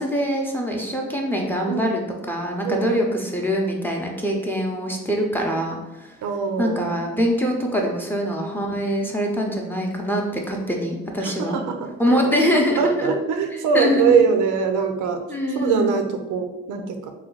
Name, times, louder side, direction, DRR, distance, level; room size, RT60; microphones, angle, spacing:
voice 1, 0.0-6.2 6.6-11.6 12.0-13.2 13.7-14.2 15.3-15.9, equal, 5° left, 0 dB, 0.6 m, -24 dB
voice 2, 6.2-6.9 11.2-11.9 12.2-12.3 12.8-15.2 15.5-17.1, right 6 dB, 80° right, 6 dB, 0.6 m, -22 dB
3.2 x 2.2 x 3.9 m, 0.96 s
cardioid pair, 90°, 30 cm